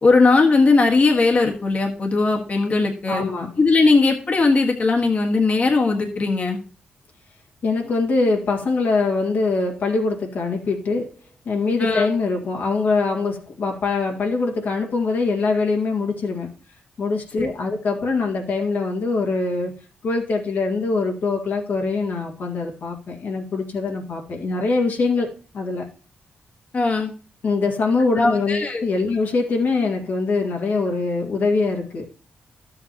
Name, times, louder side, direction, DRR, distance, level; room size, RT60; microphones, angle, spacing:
voice 1, 0.0-3.2 3.6-6.6 11.8-12.1 17.4-17.5 26.7-27.1 28.2-28.9, left 3 dB, 45° left, 1.6 m, -18 dB
voice 2, 3.1-3.6 7.6-11.1 11.5-16.5 17.0-19.7 20.0-25.9 27.4-32.1, left 3 dB, 75° left, 1.9 m, -23 dB
12.0 x 7.8 x 2.9 m
cardioid pair, 75°, 3 cm